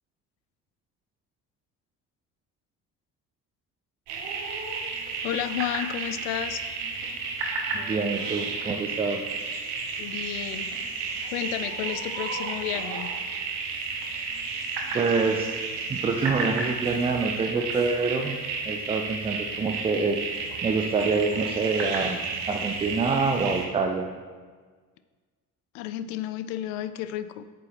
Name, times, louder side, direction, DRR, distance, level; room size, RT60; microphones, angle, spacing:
sound 1, 4.1-23.7, right 4 dB, 55° right, 1.2 m, -32 dB
voice 1, 5.2-6.7 10.0-10.7 11.3-13.1 25.7-27.4, left 12 dB, 55° left, 13 dB, 0.5 m, -32 dB
voice 2, 7.7-9.2 14.9-15.6 15.9-18.3 18.7-20.2 20.6-24.1, right 4 dB, 15° right, 3 dB, 0.4 m, -26 dB
8.5 x 6.9 x 2.9 m, 1.5 s
figure-of-eight pair, 45°, 48 cm